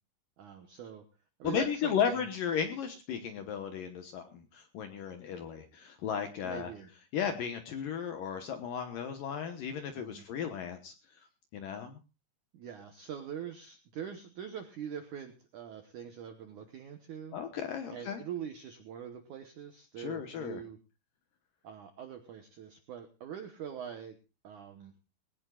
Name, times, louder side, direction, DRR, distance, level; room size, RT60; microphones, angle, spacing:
voice 1, 0.4-1.0 1.4-2.3 6.4-6.9 9.9-10.2 12.5-17.4 17.9-20.8 21.6-24.2 24.4-24.9, right 8 dB, 75° right, 6 dB, 1.8 m, -43 dB
voice 2, 1.4-6.7 7.1-10.9 11.5-12.0 17.3-18.2 20.0-20.6, left 7 dB, 65° left, 7 dB, 2.3 m, -35 dB
20.5 x 18.0 x 2.4 m, 0.29 s
omnidirectional pair, 5.3 m